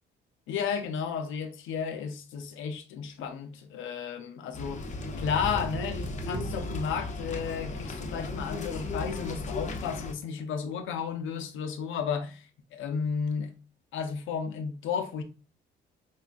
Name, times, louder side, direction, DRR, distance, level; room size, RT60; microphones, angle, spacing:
voice 1, 0.5-4.8 5.2-12.4 12.7-13.5 13.9-15.2, left 6 dB, 80° left, 0.5 m, -33 dB
sound 1, 4.5-10.1, left 3 dB, 35° left, 0.6 m, -36 dB
sound 2, 5.4-7.9, right 3 dB, 25° right, 0.4 m, -39 dB
4.3 x 2.3 x 2.4 m
cardioid pair, 90°, 20 cm